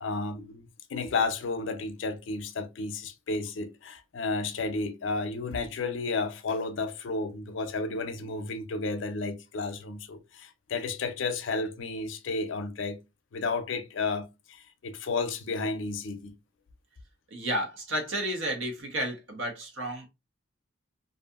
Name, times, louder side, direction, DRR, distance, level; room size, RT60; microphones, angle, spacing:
voice 1, 0.0-13.0 13.3-16.3, left 3 dB, 75° left, 0.5 m, -32 dB
voice 2, 17.3-20.1, right 1 dB, 90° right, 0.9 m, -32 dB
2.7 x 2.4 x 2.3 m
head